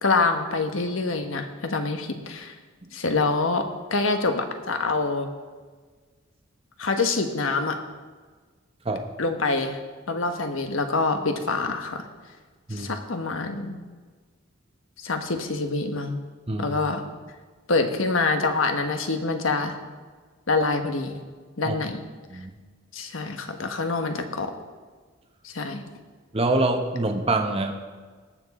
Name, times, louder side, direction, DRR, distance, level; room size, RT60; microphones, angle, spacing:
voice 1, 0.0-2.5 2.9-3.6 3.9-5.3 6.8-7.8 9.2-9.8 10.1-12.1 12.7-13.8 15.0-16.2 16.6-17.0 17.7-19.7 20.5-21.2 21.6-22.0 22.9-24.5 25.4-25.8, left 3 dB, 85° left, 6 dB, 1.2 m, -25 dB
voice 2, 26.3-27.7, right 2 dB, 30° right, 4 dB, 0.9 m, -25 dB
18.5 x 7.3 x 4.2 m, 1.4 s
head